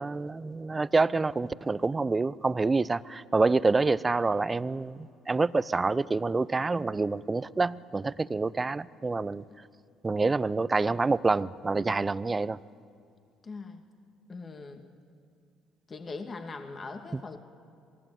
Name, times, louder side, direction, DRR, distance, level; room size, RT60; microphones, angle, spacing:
voice 1, 0.0-9.4 10.0-12.6 17.1-17.2, right 3 dB, 25° right, 18 dB, 0.7 m, -27 dB
voice 2, 13.4-13.8 14.3-14.8 15.9-17.4, left 3 dB, 40° left, 5 dB, 2.3 m, -41 dB
27.0 x 19.5 x 9.3 m, 2.4 s
hypercardioid pair, 60°, 0 cm